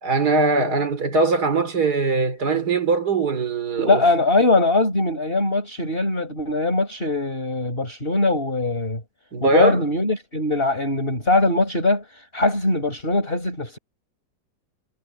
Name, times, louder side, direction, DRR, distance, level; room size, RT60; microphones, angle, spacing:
voice 1, 0.0-4.1 9.3-9.9, right 3 dB, 60° right, 4.0 m, -21 dB
voice 2, 3.8-9.0 9.4-13.8, left 2 dB, 30° left, 6.0 m, -21 dB
omnidirectional pair, 2.0 m